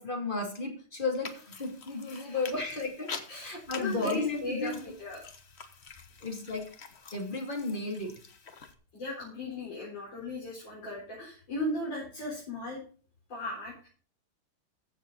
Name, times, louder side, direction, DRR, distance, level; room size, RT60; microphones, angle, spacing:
voice 1, 0.0-4.9 6.2-6.6 7.1-8.1, left 3 dB, 25° left, 2 dB, 2.7 m, -34 dB
sound 1, 1.2-8.7, left 5 dB, 40° left, 1.1 m, -46 dB
voice 2, 2.0-2.4 3.3-5.2 8.9-12.8 13.3-13.9, left 1 dB, 60° left, -5 dB, 4.9 m, -37 dB
15.0 x 7.1 x 4.0 m, 0.41 s
omnidirectional pair, 2.3 m